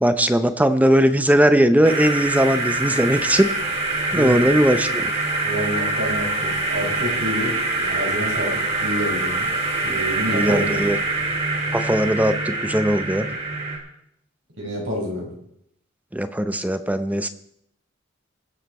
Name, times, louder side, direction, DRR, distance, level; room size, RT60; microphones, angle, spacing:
voice 1, 0.0-3.5 4.1-5.0 10.3-11.0 11.7-13.3 16.1-17.3, right 1 dB, 10° right, 10 dB, 0.7 m, -19 dB
sound 1, 1.8-13.8, right 2 dB, 30° right, 2.8 m, -24 dB
voice 2, 4.1-4.5 5.4-9.5 9.8-10.9 14.6-15.3, equal, 80° right, -1 dB, 4.7 m, -28 dB
21.0 x 7.4 x 4.3 m, 0.74 s
head